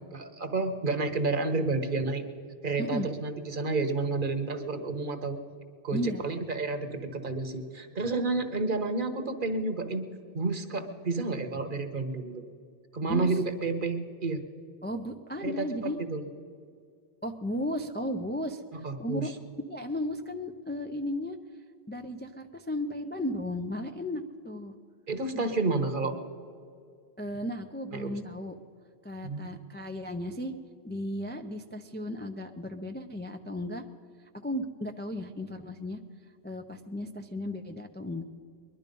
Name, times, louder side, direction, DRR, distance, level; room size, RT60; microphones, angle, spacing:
voice 1, 0.1-2.2 2.6-5.4 5.8-10.1 10.3-12.4 12.9-14.4 15.4-16.2 18.8-19.3 25.1-26.2 27.9-28.1 29.2-29.5, right 3 dB, 50° right, 8 dB, 1.3 m, -30 dB
voice 2, 2.8-3.1 5.9-6.2 13.0-13.4 14.8-16.0 17.2-19.3 19.7-21.4 21.9-24.7 25.3-25.5 27.2-28.5 29.0-30.5 30.8-33.8 34.3-36.0 36.4-38.2, left 1 dB, 15° left, 5 dB, 0.4 m, -35 dB
21.5 x 11.5 x 5.3 m, 2.2 s
omnidirectional pair, 1.1 m